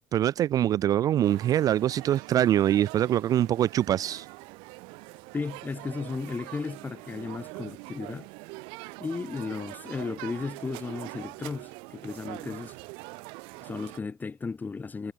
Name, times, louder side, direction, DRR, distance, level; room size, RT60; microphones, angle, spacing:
voice 1, 0.1-4.3, right 11 dB, 45° right, 0.3 m, -24 dB
sound 1, 1.2-14.0, right 30 dB, 85° right, 2.6 m, -43 dB
voice 2, 5.3-8.3 9.0-12.7 13.6-15.1, left 4 dB, 20° left, 1.0 m, -35 dB
cardioid pair, 110°, 9 cm